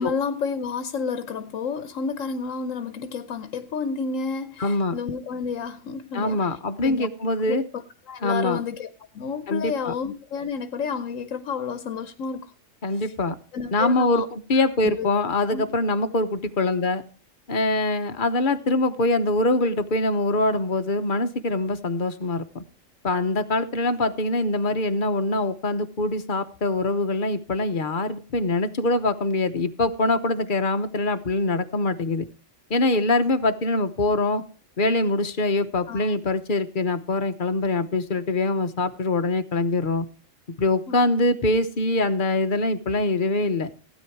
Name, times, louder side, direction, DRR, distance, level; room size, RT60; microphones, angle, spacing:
voice 1, 0.0-6.5 6.8-7.1 7.5-7.6 8.1-8.9 9.1-12.5 13.0-13.1 13.5-14.3 14.5-14.6 15.0-15.1 15.5-15.6 35.9-36.1 40.9-41.0, left 5 dB, 80° left, 1.2 m, -30 dB
voice 2, 4.6-4.9 6.1-7.6 8.2-8.6 9.5-9.9 12.8-13.3 13.7-17.0 17.5-22.6 23.0-32.3 32.7-34.4 34.8-40.1 40.6-43.7, left 2 dB, 45° left, 1.1 m, -24 dB
16.0 x 9.2 x 4.6 m
omnidirectional pair, 1.3 m